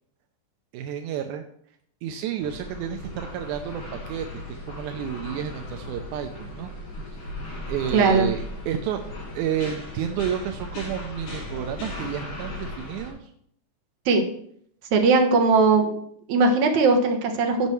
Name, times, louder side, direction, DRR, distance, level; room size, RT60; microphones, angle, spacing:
voice 1, 0.7-1.4 2.0-6.7 7.7-9.0 9.3-13.3, right 9 dB, 85° right, 5 dB, 2.1 m, -31 dB
sound 1, 2.4-13.1, left 1 dB, 70° left, 5.7 m, -37 dB
voice 2, 7.9-8.3 14.1-14.2 14.9-16.0 16.3-17.7, right 4 dB, 70° right, 3 dB, 2.5 m, -19 dB
16.0 x 5.6 x 3.2 m, 0.67 s
omnidirectional pair, 3.5 m